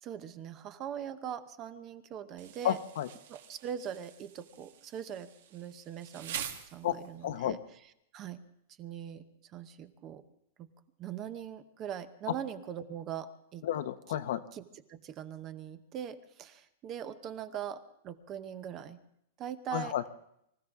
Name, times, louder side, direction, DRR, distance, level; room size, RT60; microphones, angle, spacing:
voice 1, 0.0-2.8 3.3-7.6 8.1-8.4 8.8-10.2 10.6-10.7 11.0-13.7 14.5-14.6 14.9-19.0 19.4-19.9, right 9 dB, 25° right, 12 dB, 0.8 m, -41 dB
Insect, 2.4-7.3, right 9 dB, 65° right, 1.7 m, -45 dB
voice 2, 2.6-3.1 6.8-7.0 7.2-7.6 13.6-14.4 19.7-20.0, left 11 dB, 60° left, 10 dB, 0.9 m, -31 dB
25.0 x 15.0 x 3.6 m, 0.77 s
supercardioid pair, 170°, 0 cm